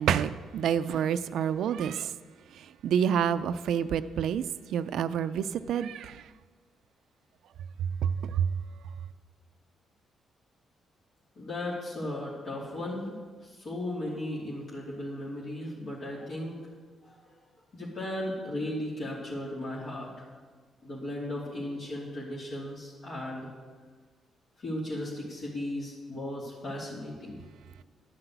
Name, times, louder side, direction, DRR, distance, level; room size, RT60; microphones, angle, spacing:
voice 1, 0.0-2.1 2.5-4.4 4.7-6.2 8.0-8.5, right 8 dB, 80° right, 0.4 m, -28 dB
voice 2, 11.3-16.6 17.0-17.4 17.7-20.3 20.8-23.5 24.6-27.4, left 1 dB, 60° left, 2.9 m, -36 dB
11.5 x 5.8 x 8.0 m
cardioid pair, 75°, 0 cm